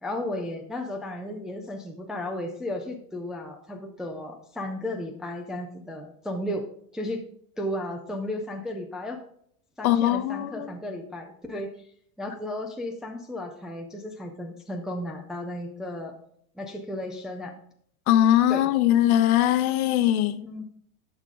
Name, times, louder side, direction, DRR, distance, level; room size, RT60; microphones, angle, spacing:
voice 1, 0.0-6.6 6.9-7.2 7.6-9.2 9.8-11.7 12.2-16.1 16.6-17.5 18.5-18.7 20.4-20.6, left 1 dB, ahead, 0.3 m, -34 dB
voice 2, 9.8-10.7 18.1-20.4, left 12 dB, 75° left, 1.0 m, -21 dB
12.0 x 6.5 x 3.7 m
supercardioid pair, 145°, 43 cm